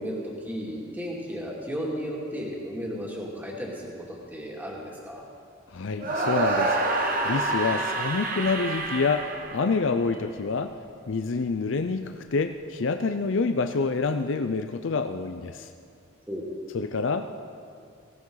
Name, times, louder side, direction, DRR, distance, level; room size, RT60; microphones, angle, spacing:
voice 1, 0.0-5.2 16.3-16.5, equal, 10° right, -3 dB, 2.5 m, -34 dB
voice 2, 5.7-6.8 7.2-10.7 11.1-15.7 16.7-17.3, left 4 dB, 75° left, 8 dB, 0.5 m, -27 dB
sound 1, 6.0-10.2, right 2 dB, 45° right, 1.4 m, -27 dB
18.5 x 17.5 x 3.9 m, 2.3 s
head